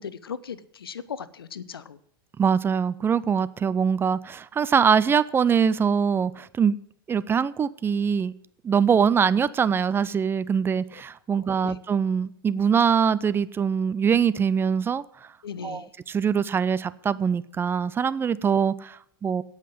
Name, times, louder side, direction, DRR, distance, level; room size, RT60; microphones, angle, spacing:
voice 1, 0.0-2.0 11.3-11.8 15.4-15.9, left 7 dB, 80° left, 0.7 m, -38 dB
voice 2, 2.4-6.8 7.1-8.3 8.6-15.0 15.6-19.4, right 7 dB, 20° right, 0.5 m, -23 dB
16.5 x 5.8 x 7.6 m
hypercardioid pair, 95°, 12 cm